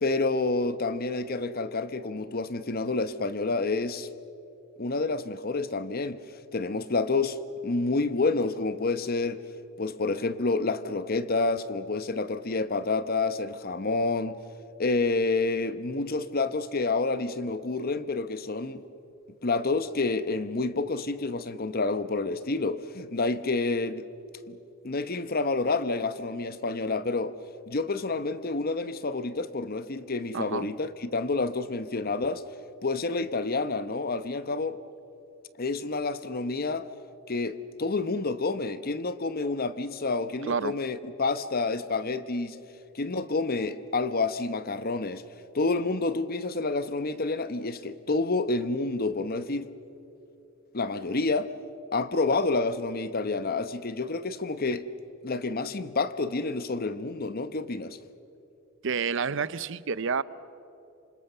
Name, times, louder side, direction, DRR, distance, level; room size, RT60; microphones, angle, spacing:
voice 1, 0.0-4.1 4.8-6.2 6.5-9.4 9.8-14.4 14.8-18.8 19.4-24.1 24.5-24.6 24.8-27.3 27.7-32.4 32.8-34.8 35.6-36.9 37.3-42.6 42.9-45.2 45.5-49.7 50.7-51.5 51.9-54.8 55.2-58.0, left 3 dB, 45° left, 0.9 m, -29 dB
voice 2, 30.3-30.7 40.5-40.7 58.8-60.2, right 5 dB, 65° right, 0.7 m, -29 dB
28.0 x 26.0 x 6.9 m
head